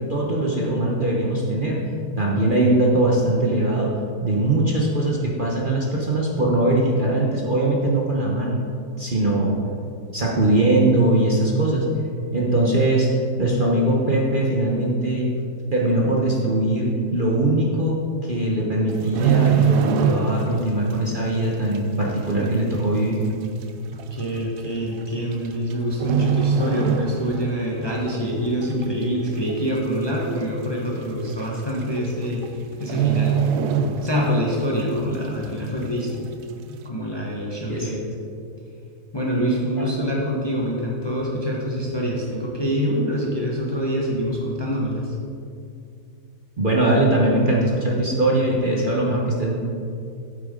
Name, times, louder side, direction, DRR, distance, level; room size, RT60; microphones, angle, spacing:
voice 1, 0.0-1.8 2.2-8.6 9.0-9.6 10.1-11.8 12.3-13.1 13.4-15.3 15.7-18.0 18.2-23.2 37.7-38.0 39.8-39.9 46.6-49.6, right 1 dB, 35° right, -3 dB, 1.0 m, -21 dB
sound 1, 18.9-20.6 20.9-21.2 21.7-21.8 22.7-22.8 23.1-23.2 24.0-24.2 25.3-25.7 26.0-27.6 27.9-28.1 28.6-29.1 29.5-29.6 29.8-29.9 30.3-30.4 31.4-31.5 31.8-32.1 32.3-32.5 32.8-34.5 34.8-34.9, right 8 dB, 80° right, 1.2 m, -22 dB
voice 2, 24.1-32.4 32.8-33.4 34.0-36.3 36.7-37.9 39.1-45.1, equal, 20° left, -3 dB, 1.0 m, -25 dB
9.0 x 8.4 x 3.8 m, 2.5 s
omnidirectional pair, 1.7 m